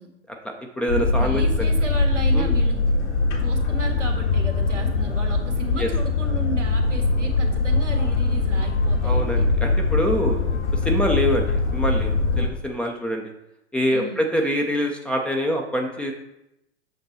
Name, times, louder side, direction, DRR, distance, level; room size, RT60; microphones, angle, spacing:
voice 1, 0.3-1.7 2.3-2.5 5.8-5.9 9.0-10.6 10.8-13.2 13.7-16.1, equal, 5° left, 1 dB, 0.3 m, -25 dB
Boat Water vehicle, 0.9-12.5, left 3 dB, 70° left, 1.6 m, -22 dB
voice 2, 1.2-2.8 3.4-9.5 13.9-14.3, right 2 dB, 90° right, 3 dB, 1.8 m, -35 dB
7.9 x 6.0 x 4.0 m, 0.85 s
figure-of-eight pair, 105°, 35 cm